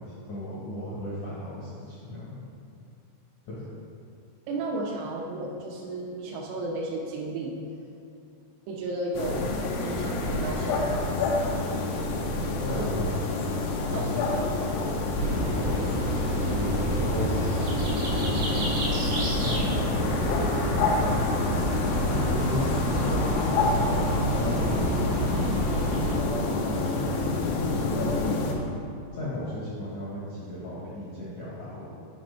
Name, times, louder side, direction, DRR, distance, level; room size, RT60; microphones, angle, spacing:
voice 1, 0.0-2.4 3.4-3.7 12.6-13.3 13.9-14.5 15.5-15.9 16.5-17.4 18.1-18.6 19.4-21.3 22.1-27.1 27.6-28.3 29.1-31.9, left 1 dB, 70° left, -8 dB, 1.8 m, -36 dB
voice 2, 4.5-7.5 8.7-9.5 9.8-11.1 12.8-13.0 13.9-14.7 15.1-15.4, right 2 dB, 85° right, -1 dB, 2.8 m, -34 dB
sound 1, 9.1-28.5, left 2 dB, 90° left, 3.2 m, -28 dB
sound 2, 15.1-26.1, right 1 dB, 65° right, 1.4 m, -29 dB
7.7 x 5.2 x 4.8 m, 2.7 s
omnidirectional pair, 5.4 m